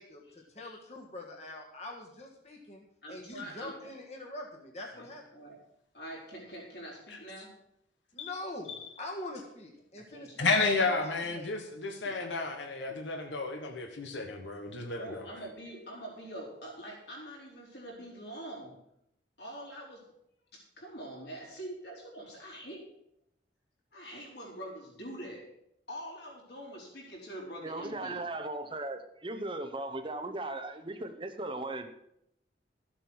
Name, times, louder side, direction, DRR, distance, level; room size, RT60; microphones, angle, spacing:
voice 1, 0.0-5.2 8.1-10.5 10.8-11.5, left 1 dB, 35° left, 1.5 m, -44 dB
voice 2, 3.0-3.7 5.0-5.1 5.3-5.6 5.9-7.5 9.9-10.5 11.8-13.0 15.0-18.8 19.4-20.1 20.5-22.8 23.9-25.5 25.9-28.2, right 1 dB, 65° left, 4.2 m, -45 dB
voice 3, 10.4-15.2, left 3 dB, 85° left, 1.3 m, -32 dB
voice 4, 27.6-31.9, right 2 dB, 25° right, 0.8 m, -37 dB
13.5 x 7.8 x 6.3 m
head